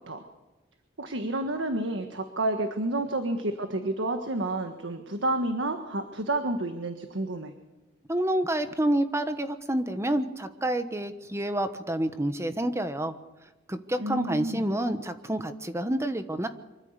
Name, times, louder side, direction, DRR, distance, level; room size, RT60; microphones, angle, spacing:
voice 1, 1.0-7.5 14.0-14.6, right 2 dB, 80° right, 6 dB, 1.5 m, -30 dB
voice 2, 8.1-13.1 13.7-16.5, right 1 dB, 15° right, 9 dB, 1.2 m, -28 dB
25.0 x 13.5 x 8.2 m, 1.1 s
head